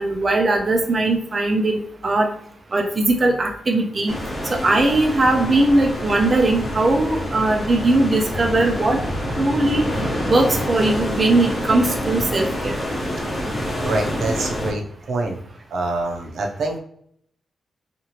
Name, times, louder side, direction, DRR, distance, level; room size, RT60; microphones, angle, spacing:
voice 1, 0.0-2.3 2.7-4.1 4.5-9.0 9.3-9.8 10.3-12.8, right 2 dB, 30° right, 2 dB, 0.3 m, -19 dB
sound 1, 4.1-14.7, equal, 20° left, 0.8 m, -27 dB
voice 2, 13.8-15.4 15.7-16.8, right 2 dB, 75° right, 2 dB, 0.5 m, -25 dB
2.9 x 2.5 x 2.7 m, 0.66 s
wide cardioid pair, 170°, 0 cm